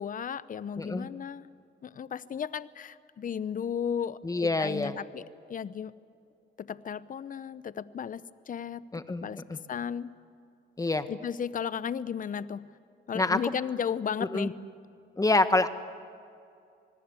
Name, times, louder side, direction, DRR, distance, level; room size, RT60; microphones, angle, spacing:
voice 1, 0.0-1.5 1.8-5.9 6.6-8.8 9.2-9.4 9.7-10.1 11.1-12.7 13.1-14.5, left 7 dB, 45° left, 16 dB, 0.8 m, -34 dB
voice 2, 0.8-1.1 4.2-5.0 8.9-9.6 10.8-11.1 13.1-13.5 14.3-14.5 15.2-15.7, left 2 dB, 15° left, 10 dB, 1.4 m, -27 dB
26.0 x 20.0 x 8.2 m, 2.4 s
cardioid pair, 90°, 20 cm